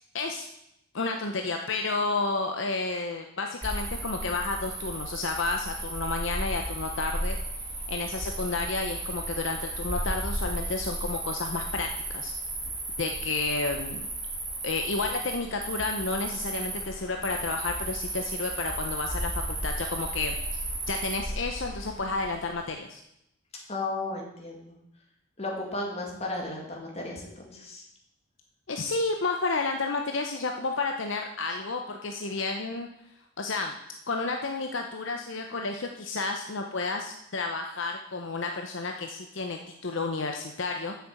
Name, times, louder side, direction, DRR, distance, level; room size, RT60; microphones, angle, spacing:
voice 1, 0.1-0.5 0.9-7.4 7.9-12.3 13.0-14.1 14.6-20.6 20.9-23.0 28.7-32.9 33.4-33.7 34.1-41.0, left 3 dB, 65° left, 4 dB, 0.8 m, -31 dB
Cricket, 3.6-22.5, right 2 dB, 30° right, 2.4 m, -34 dB
voice 2, 23.7-24.8 25.4-27.8, left 2 dB, 30° left, -1 dB, 2.2 m, -34 dB
7.4 x 6.8 x 7.7 m, 0.78 s
head